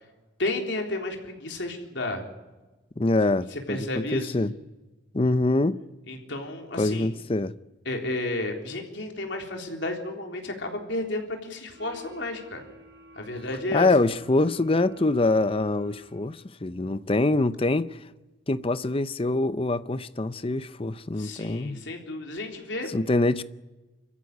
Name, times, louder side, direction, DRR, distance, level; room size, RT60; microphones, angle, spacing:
voice 1, 0.4-2.2 3.5-4.3 6.1-7.1 7.9-12.6 13.1-13.9 21.2-22.9, left 2 dB, 70° left, 3.7 m, -32 dB
voice 2, 3.0-4.5 5.1-5.8 6.8-7.5 13.7-18.1 18.5-21.8 22.9-23.4, left 2 dB, 30° left, 0.6 m, -24 dB
sound 1, 11.7-16.5, equal, 75° right, 6.3 m, -51 dB
25.0 x 14.5 x 9.5 m
head